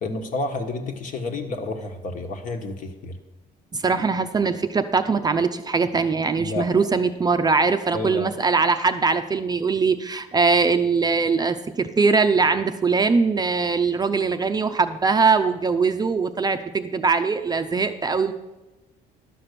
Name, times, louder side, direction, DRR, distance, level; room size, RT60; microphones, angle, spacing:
voice 1, 0.0-3.2 6.4-6.7 7.9-8.3, left 2 dB, 50° left, 5 dB, 1.4 m, -30 dB
voice 2, 3.7-18.3, right 4 dB, 25° right, 8 dB, 0.5 m, -21 dB
12.0 x 5.8 x 6.8 m, 1.1 s
cardioid pair, 110°, 17 cm